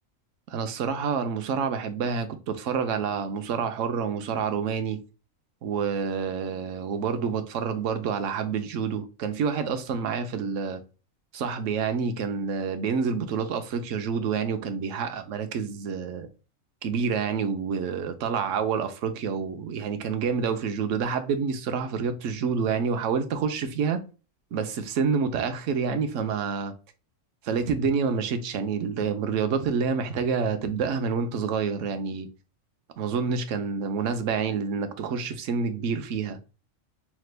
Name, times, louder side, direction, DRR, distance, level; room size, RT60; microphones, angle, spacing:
voice 1, 0.5-5.0 5.6-10.8 11.3-16.3 16.8-24.0 24.5-26.7 27.4-32.3 33.0-36.4, right 6 dB, 70° right, 1.0 m, -28 dB
5.9 x 2.2 x 3.2 m
omnidirectional pair, 1.4 m